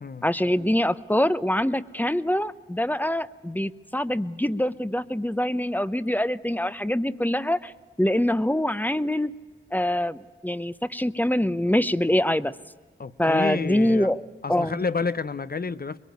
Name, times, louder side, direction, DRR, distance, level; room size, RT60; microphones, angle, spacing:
voice 1, 0.2-7.7 8.0-9.3 9.7-12.5 13.2-14.2 14.5-14.8, left 1 dB, 10° left, 0.8 m, -24 dB
voice 2, 13.0-14.1 14.4-16.0, left 4 dB, 50° left, 0.8 m, -29 dB
23.0 x 22.5 x 9.3 m
wide cardioid pair, 60°, 20 cm